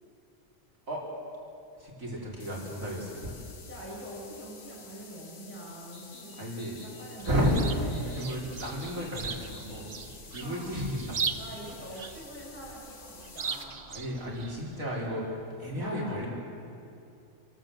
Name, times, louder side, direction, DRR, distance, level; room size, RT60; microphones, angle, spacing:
voice 1, 1.7-3.3 6.4-6.9 7.2-9.9 10.3-11.2 13.9-16.3, equal, 90° right, -4 dB, 4.5 m, -32 dB
sound 1, 2.4-13.6, left 4 dB, 50° left, 1.7 m, -51 dB
sound 2, 3.4-3.5 5.9-9.9, left 1 dB, 75° left, 4.0 m, -52 dB
voice 2, 3.7-6.4 6.8-8.3 10.4-10.7 11.4-13.8 15.8-16.1, right 1 dB, 10° left, -5 dB, 7.5 m, -44 dB
Chirp tweet, 7.2-14.8, right 5 dB, 40° right, 0.8 m, -39 dB
27.5 x 13.0 x 7.9 m, 2.6 s
omnidirectional pair, 1.4 m